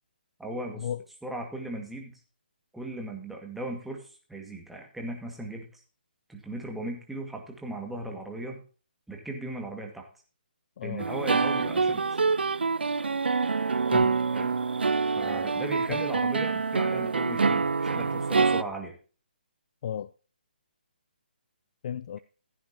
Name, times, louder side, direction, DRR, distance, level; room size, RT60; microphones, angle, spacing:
voice 1, 0.4-0.9 1.2-2.2 2.7-5.7 6.3-8.6 9.1-10.1 10.8-12.0 14.3-14.6 15.2-18.9, right 2 dB, 5° right, 2.1 m, -37 dB
voice 2, 10.8-11.1 13.9-14.2 15.9-16.1 19.8-20.1 21.8-22.2, left 9 dB, 45° left, 0.4 m, -34 dB
sound 1, 11.0-18.6, right 4 dB, 80° right, 0.5 m, -26 dB
15.5 x 9.3 x 3.0 m
figure-of-eight pair, 145°, 6 cm